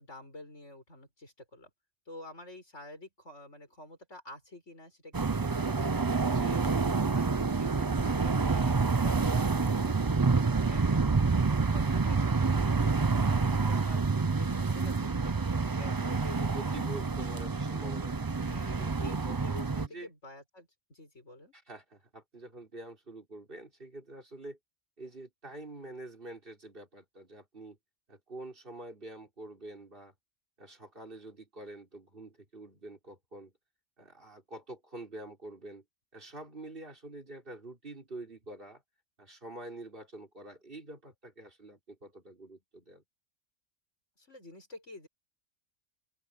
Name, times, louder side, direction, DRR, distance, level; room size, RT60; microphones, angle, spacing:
voice 1, 0.0-1.7 2.1-6.8 7.1-16.8 18.4-21.5 44.2-45.1, left 1 dB, 85° left, 7.1 m, -49 dB
sound 1, 5.1-19.9, right 4 dB, 25° right, 0.5 m, -28 dB
voice 2, 6.3-6.9 16.5-20.1 21.5-24.6 25.0-27.8 28.1-30.1 30.6-33.5 34.0-35.8 36.1-38.8 39.2-43.0, right 2 dB, 50° right, 4.5 m, -47 dB
open air
omnidirectional pair, 1.2 m